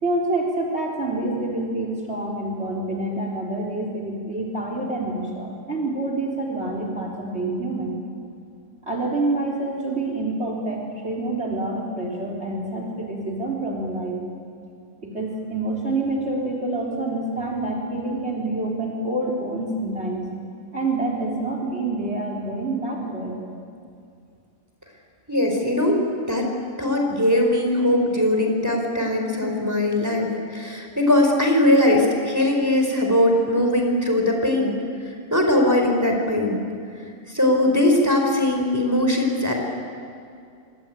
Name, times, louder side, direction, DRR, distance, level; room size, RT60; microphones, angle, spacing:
voice 1, 0.0-8.0 8.9-14.2 15.0-20.3 20.7-23.4, right 2 dB, 45° right, 0 dB, 4.0 m, -27 dB
voice 2, 25.3-34.7 35.3-36.6 37.3-39.5, left 1 dB, 10° right, 1 dB, 4.5 m, -20 dB
26.0 x 25.0 x 9.1 m, 2.4 s
omnidirectional pair, 1.6 m